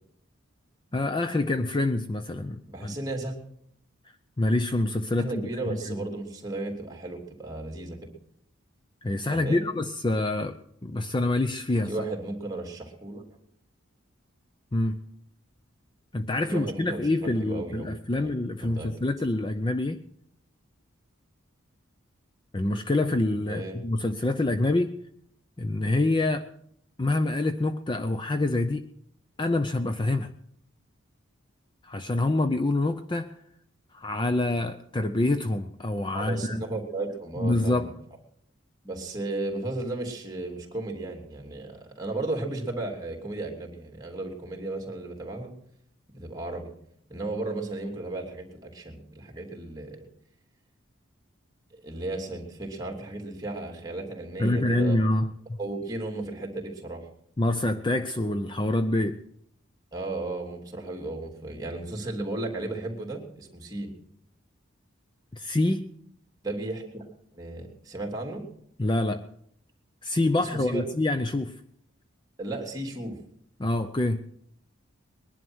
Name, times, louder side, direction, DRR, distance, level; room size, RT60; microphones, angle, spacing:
voice 1, 0.9-3.0 4.4-5.4 5.9-6.0 9.0-11.9 14.7-15.0 16.1-20.0 22.5-25.0 25.6-26.5 27.0-28.8 29.4-30.3 31.8-33.3 33.9-36.6 37.4-37.9 54.4-55.6 57.4-59.2 65.3-65.9 68.8-69.2 70.0-71.6 73.6-74.2, left 2 dB, 20° left, 9 dB, 0.5 m, -26 dB
voice 2, 2.7-3.3 5.2-8.0 9.3-9.6 11.9-13.2 16.5-18.3 18.6-18.9 23.5-23.8 36.1-37.9 38.8-45.5 46.1-46.7 47.1-50.1 51.7-55.0 55.6-57.1 59.9-63.9 66.4-67.1 67.3-68.4 70.4-70.8 72.4-73.2, right 2 dB, 20° right, 2 dB, 2.9 m, -34 dB
21.0 x 11.0 x 6.2 m, 0.69 s
head